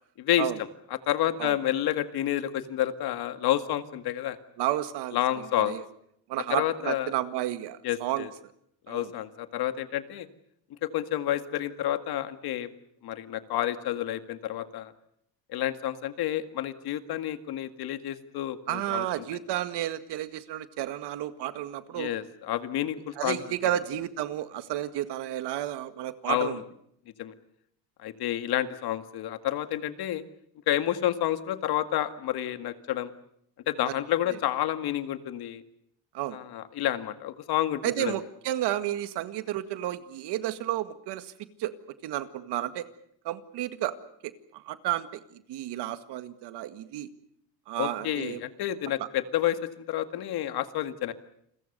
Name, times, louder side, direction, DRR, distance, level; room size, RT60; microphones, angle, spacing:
voice 1, 0.2-0.5 0.9-4.4 5.1-5.8 6.5-7.1 7.8-8.3 8.9-10.3 10.8-12.7 13.0-14.9 15.5-19.1 22.0-23.6 26.3-26.6 27.2-27.3 28.0-30.2 30.7-33.1 33.7-35.6 36.3-38.2 47.8-51.1, left 12 dB, 55° left, 10 dB, 2.0 m, -29 dB
voice 2, 4.6-5.2 5.6-5.8 6.3-8.3 8.9-9.1 18.7-22.1 23.2-26.6 33.9-34.0 36.1-36.4 37.8-41.3 41.6-41.7 42.0-42.9 43.3-44.0 44.2-45.1 45.5-47.1 47.7-48.4 49.0-49.1, right 13 dB, 65° right, 11 dB, 2.0 m, -31 dB
29.5 x 22.5 x 6.8 m, 0.72 s
cardioid pair, 145°, 43 cm